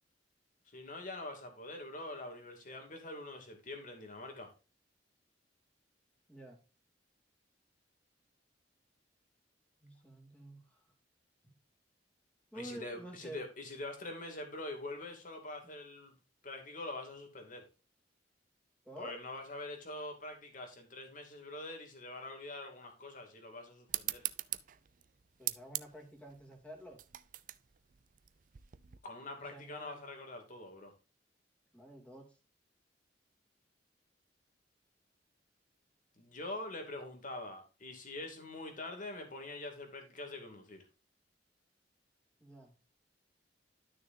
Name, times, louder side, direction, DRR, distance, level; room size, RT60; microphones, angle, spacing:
voice 1, 0.7-4.5 12.5-16.1 16.4-17.6 19.0-24.2 29.0-30.9 36.2-40.8, left 2 dB, 45° left, 2.5 m, -44 dB
voice 2, 6.3-6.6 9.8-10.8 11.4-11.5 12.5-13.4 18.8-19.2 25.4-27.0 29.4-30.0 31.7-32.4 42.4-42.7, right 1 dB, 5° left, 2.5 m, -49 dB
sound 1, 23.9-29.0, right 15 dB, 45° right, 0.5 m, -41 dB
12.0 x 6.5 x 2.7 m
head